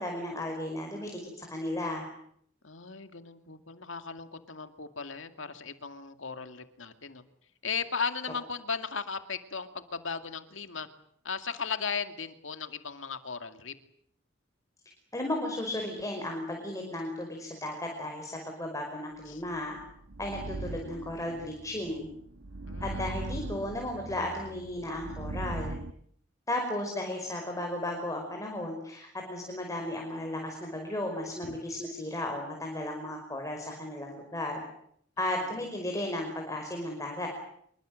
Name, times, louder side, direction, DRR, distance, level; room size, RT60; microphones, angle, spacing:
voice 1, 0.0-2.1 15.1-19.8 20.2-22.1 22.8-25.8 26.5-34.6 35.2-37.3, left 1 dB, 15° left, 2 dB, 5.2 m, -35 dB
voice 2, 2.6-7.2 7.6-10.9 11.2-13.7 19.3-19.4 22.7-23.0 31.4-31.5 35.2-35.3, left 5 dB, 75° left, 8 dB, 2.4 m, -36 dB
sound 1, 19.5-25.9, right 2 dB, 80° right, 1.2 m, -40 dB
26.5 x 23.5 x 7.8 m, 0.67 s
head